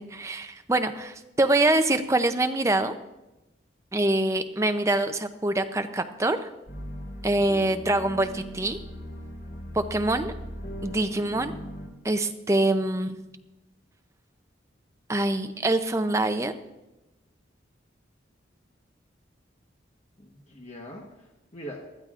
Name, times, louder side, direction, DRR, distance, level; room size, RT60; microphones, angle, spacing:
voice 1, 0.0-2.9 3.9-6.5 7.2-8.8 9.7-10.3 10.8-11.5 12.0-13.2 15.1-16.5, right 2 dB, 15° right, 8 dB, 0.5 m, -25 dB
sound 1, 6.7-11.9, equal, 70° left, 3.6 m, -39 dB
voice 2, 20.2-21.8, equal, 35° left, 0 dB, 1.1 m, -43 dB
19.5 x 13.0 x 2.5 m, 1.0 s
head